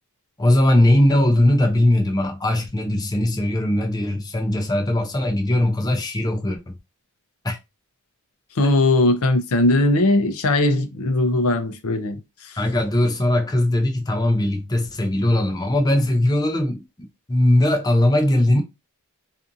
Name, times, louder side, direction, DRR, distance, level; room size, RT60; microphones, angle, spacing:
voice 1, 0.4-6.7 7.4-7.6 8.6-8.7 12.6-18.6, left 1 dB, 20° left, 0.5 m, -20 dB
voice 2, 8.6-12.6, left 2 dB, 75° left, 0.5 m, -19 dB
2.6 x 2.5 x 2.5 m
head